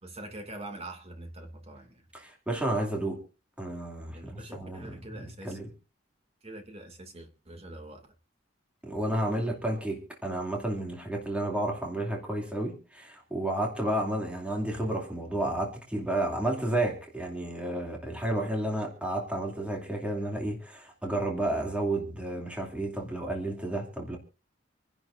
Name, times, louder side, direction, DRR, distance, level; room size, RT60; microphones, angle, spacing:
voice 1, 0.0-2.0 4.1-5.6 6.4-8.0, right 1 dB, 35° right, 2.4 m, -44 dB
voice 2, 2.1-3.2 3.6-5.7 8.8-24.2, right 1 dB, 5° right, 2.6 m, -31 dB
27.0 x 11.0 x 2.6 m
head